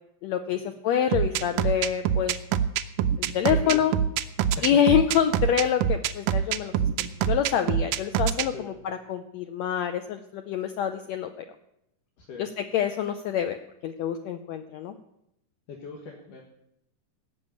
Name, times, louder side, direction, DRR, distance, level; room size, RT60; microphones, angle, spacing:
voice 1, 0.2-2.3 3.2-3.9 4.6-6.7 7.3-11.4 12.4-13.6 13.8-14.9, left 9 dB, 90° left, 7 dB, 1.5 m, -26 dB
sound 1, 1.1-8.5, right 9 dB, 85° right, 1.6 m, -24 dB
voice 2, 3.5-3.8 4.4-4.6 8.5-8.7 12.2-12.5 15.7-16.4, left 5 dB, 70° left, 1 dB, 3.0 m, -40 dB
17.0 x 6.3 x 8.8 m, 0.81 s
omnidirectional pair, 4.0 m